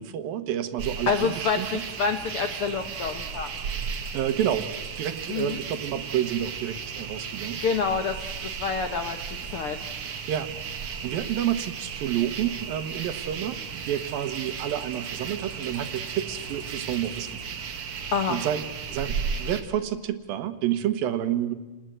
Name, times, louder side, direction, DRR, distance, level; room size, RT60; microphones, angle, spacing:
voice 1, 0.0-1.8 4.1-4.7 5.0-7.6 10.3-10.5 10.8-17.6 18.0-18.6 18.9-21.5, right 11 dB, 75° right, 10 dB, 3.0 m, -29 dB
sound 1, 0.8-19.6, right 6 dB, 50° right, 2.1 m, -35 dB
voice 2, 1.1-3.5 5.3-5.6 7.6-9.9 18.1-18.4, left 5 dB, 75° left, 8 dB, 1.2 m, -28 dB
29.0 x 20.0 x 7.9 m, 1.1 s
omnidirectional pair, 4.3 m